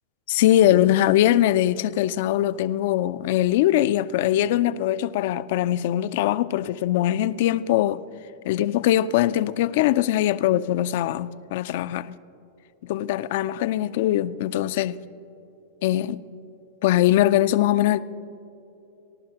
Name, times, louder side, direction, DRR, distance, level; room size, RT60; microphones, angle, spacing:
voice 1, 0.3-8.0 8.5-12.1 12.8-15.0 15.8-16.2 16.8-18.0, left 13 dB, 55° left, 0.3 m, -21 dB
29.0 x 12.0 x 2.8 m
figure-of-eight pair, 95°, 0 cm